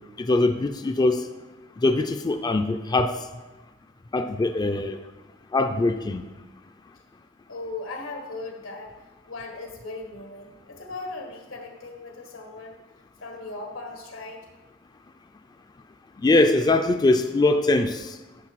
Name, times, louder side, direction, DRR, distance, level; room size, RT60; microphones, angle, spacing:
voice 1, 0.2-1.2 1.8-3.1 4.1-5.0 5.5-6.2 16.2-18.1, left 2 dB, 20° left, 7 dB, 0.3 m, -22 dB
voice 2, 7.5-9.0 9.3-12.8 13.2-14.5, left 3 dB, 90° left, 2 dB, 1.8 m, -38 dB
9.7 x 6.5 x 4.6 m, 1.2 s
head